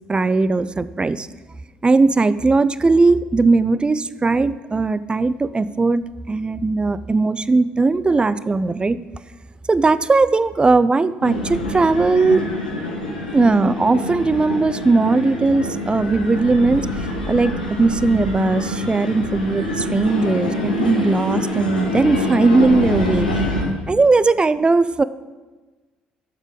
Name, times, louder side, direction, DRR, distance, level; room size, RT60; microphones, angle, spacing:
voice 1, 0.1-1.3 1.8-9.0 9.7-12.4 13.3-16.9 17.3-23.3 23.9-25.0, right 3 dB, 20° right, 16 dB, 0.5 m, -18 dB
sound 1, 11.2-23.7, left 1 dB, 85° left, 1.4 m, -25 dB
13.0 x 7.3 x 5.4 m, 1.3 s
figure-of-eight pair, 50°, 5 cm